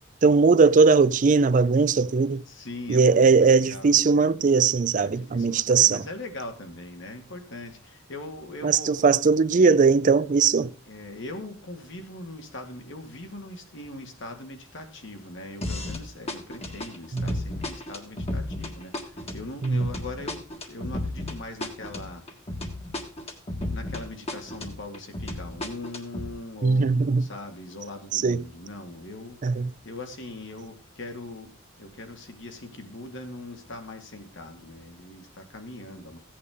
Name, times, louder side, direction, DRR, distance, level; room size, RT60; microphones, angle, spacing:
voice 1, 0.2-2.4 2.9-6.0 8.6-10.7 17.1-17.3 19.6-19.9 26.6-27.3 28.1-28.4 29.4-29.7, right 4 dB, 40° right, 0.4 m, -19 dB
voice 2, 2.5-4.1 5.0-9.0 10.9-20.4 20.7-22.2 23.7-36.2, left 2 dB, 65° left, 1.9 m, -40 dB
sound 1, 15.6-16.0 16.3-24.0 24.3-26.3, left 1 dB, 30° left, 1.6 m, -33 dB
15.5 x 8.5 x 3.6 m
head